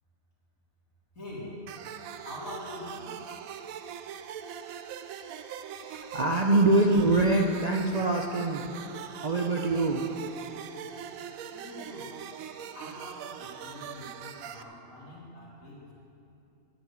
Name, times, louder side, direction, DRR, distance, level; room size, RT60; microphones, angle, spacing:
voice 1, 1.1-1.7 2.2-3.2 11.5-12.2 12.7-15.9, left 1 dB, 80° left, -7 dB, 3.7 m, -44 dB
sound 1, 1.7-14.6, right 8 dB, 85° right, 1.0 m, -42 dB
voice 2, 5.8-8.6 9.2-10.0, right 2 dB, 40° right, 1 dB, 0.6 m, -24 dB
10.5 x 7.9 x 8.7 m, 2.7 s
omnidirectional pair, 1.4 m